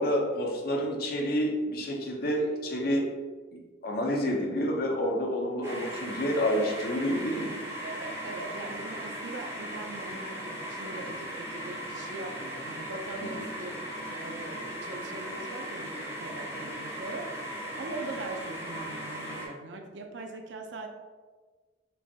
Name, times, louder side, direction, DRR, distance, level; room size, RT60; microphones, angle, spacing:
voice 1, 0.0-3.1 3.5-7.6 13.2-13.5, equal, 55° left, 0 dB, 0.6 m, -29 dB
sound 1, 5.6-19.5, equal, 15° right, 0.8 m, -38 dB
voice 2, 7.8-13.7 14.1-20.9, right 2 dB, 85° right, 4 dB, 0.5 m, -41 dB
5.1 x 2.2 x 2.8 m, 1.4 s
head